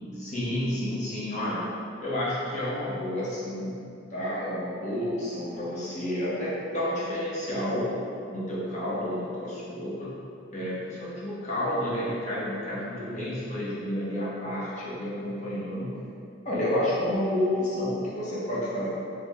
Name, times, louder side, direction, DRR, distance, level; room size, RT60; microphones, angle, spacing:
voice 1, 0.2-1.6 2.0-3.8 4.1-7.9 8.3-10.1 10.5-15.9 16.4-18.9, left 1 dB, 35° left, -8 dB, 0.7 m, -30 dB
3.3 x 2.0 x 3.3 m, 2.5 s
head